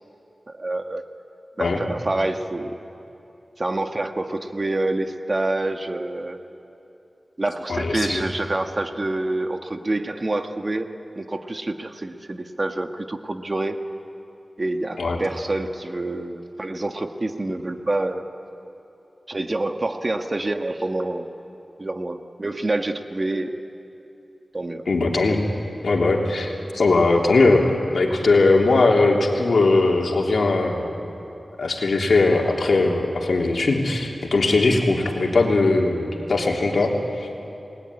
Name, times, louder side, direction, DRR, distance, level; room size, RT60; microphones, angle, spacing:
voice 1, 0.5-1.0 1.6-2.8 3.6-6.4 7.4-10.9 11.1-13.8 14.6-18.2 19.3-21.3 21.8-23.5 24.5-24.8, right 2 dB, 45° right, 6 dB, 1.7 m, -27 dB
voice 2, 7.7-8.2 15.0-15.2 24.9-25.4 25.8-30.9 31.6-37.3, left 3 dB, 85° left, 1 dB, 3.3 m, -20 dB
29.0 x 20.5 x 9.9 m, 2.9 s
wide cardioid pair, 55°, 0 cm